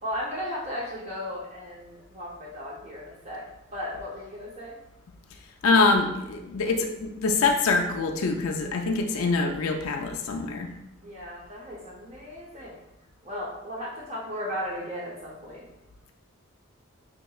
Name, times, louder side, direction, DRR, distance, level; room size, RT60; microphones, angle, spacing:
voice 1, 0.0-3.4 3.7-4.8 11.0-12.8 13.2-15.6, equal, 30° right, -5 dB, 0.6 m, -36 dB
voice 2, 5.6-10.7, left 3 dB, 80° left, 3 dB, 0.4 m, -24 dB
5.2 x 2.8 x 2.3 m, 0.88 s
head